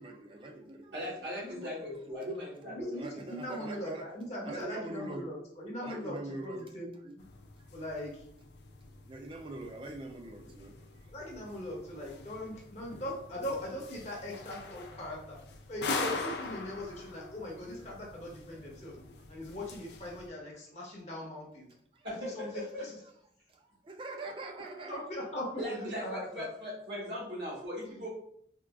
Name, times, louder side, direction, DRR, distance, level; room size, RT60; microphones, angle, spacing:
voice 1, 0.0-1.3 2.9-4.1 4.4-5.3 5.8-6.7 7.6-7.7 9.1-11.1 18.5-18.6 21.9-22.1 23.5-25.0, right 2 dB, 30° right, 3 dB, 0.3 m, -43 dB
voice 2, 0.9-2.9 22.0-22.9 25.6-28.1, equal, 75° right, -5 dB, 1.2 m, -39 dB
voice 3, 2.6-7.2 7.7-8.2 11.1-15.4 15.7-19.0 19.3-21.7 22.2-22.5 22.8-23.0 24.5-26.5, left 1 dB, 35° left, -2 dB, 0.6 m, -40 dB
sound 1, 7.2-20.3, left 4 dB, 70° left, 0.3 m, -43 dB
3.6 x 2.3 x 2.3 m, 0.67 s
head